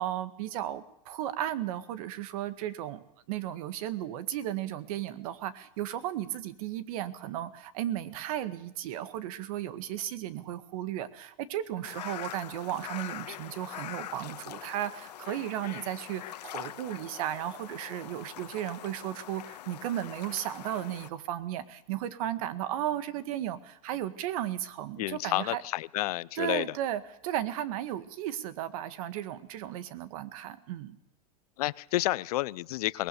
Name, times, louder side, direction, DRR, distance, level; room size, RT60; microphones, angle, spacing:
voice 1, 0.0-25.6 26.3-31.0, right 12 dB, 60° right, 13 dB, 1.8 m, -35 dB
sound 1, 11.8-21.1, left 12 dB, 85° left, 1.5 m, -43 dB
voice 2, 25.0-26.6 31.6-33.1, left 17 dB, 65° left, 20 dB, 0.7 m, -30 dB
22.5 x 19.5 x 7.0 m, 0.82 s
supercardioid pair, 135°, 20 cm